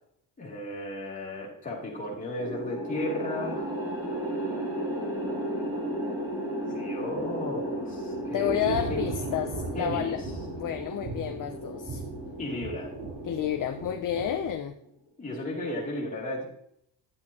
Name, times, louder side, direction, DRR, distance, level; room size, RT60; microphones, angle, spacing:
voice 1, 0.4-3.7 6.7-9.0 9.8-10.2 12.4-12.9 15.2-16.5, left 1 dB, 15° left, -4 dB, 2.8 m, -34 dB
sound 1, 2.4-14.7, right 1 dB, 10° right, 2.3 m, -35 dB
Thunder / Rain, 7.2-14.5, right 3 dB, 65° right, 3.6 m, -38 dB
voice 2, 8.3-10.2 10.5-12.0 13.2-14.7, left 10 dB, 45° left, 7 dB, 0.6 m, -30 dB
11.0 x 8.2 x 2.8 m, 0.70 s
wide cardioid pair, 180°, 45 cm